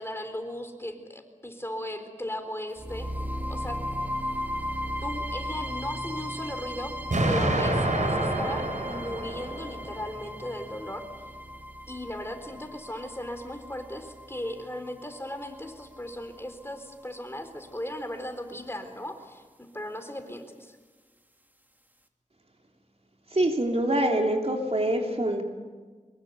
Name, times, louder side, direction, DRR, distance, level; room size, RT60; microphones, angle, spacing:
voice 1, 0.0-3.1 3.5-3.8 5.0-6.9 7.3-11.0 11.9-20.8, left 1 dB, 20° left, 7 dB, 3.9 m, -37 dB
sound 1, 2.8-16.8, equal, 15° right, 2.6 m, -37 dB
Explosion, 7.1-10.1, right 1 dB, 80° right, 4.8 m, -27 dB
voice 2, 23.3-25.4, right 1 dB, 55° right, 2 dB, 3.4 m, -25 dB
24.5 x 22.5 x 8.3 m, 1.4 s
wide cardioid pair, 50°, 13 cm